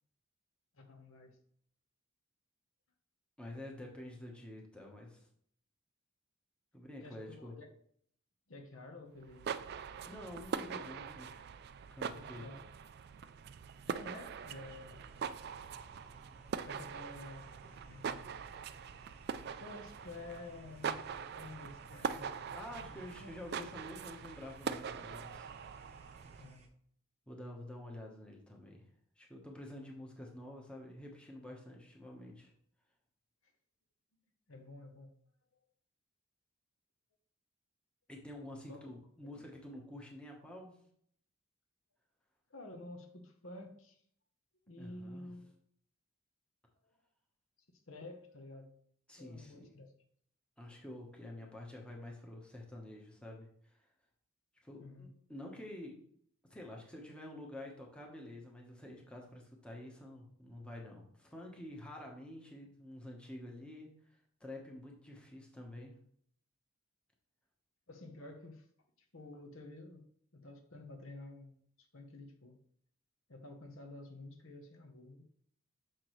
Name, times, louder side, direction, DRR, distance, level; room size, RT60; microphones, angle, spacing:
voice 1, 0.7-1.4 7.0-7.7 8.5-9.6 12.1-12.6 13.9-15.0 16.6-18.2 19.6-23.3 26.4-26.7 33.4-33.5 34.5-35.1 38.7-39.4 42.5-44.0 44.7-45.5 46.8-47.0 47.9-48.7 49.2-49.9 54.8-55.2 65.1-65.2 67.9-68.7 69.0-70.0 70.3-72.6 73.3-75.3, left 2 dB, 65° left, 4 dB, 1.0 m, -51 dB
voice 2, 3.4-5.3 6.7-7.5 9.9-11.3 11.9-12.5 22.5-25.5 26.3-26.4 27.3-28.9 29.2-32.5 38.1-40.7 44.8-45.3 49.1-49.7 50.6-53.9 54.6-55.9 56.5-65.9, left 1 dB, 5° left, -1 dB, 1.0 m, -49 dB
sound 1, 9.2-26.5, right 6 dB, 50° right, 0.3 m, -43 dB
sound 2, 14.4-26.7, right 1 dB, 30° right, 0.8 m, -61 dB
6.5 x 6.0 x 3.1 m, 0.64 s
head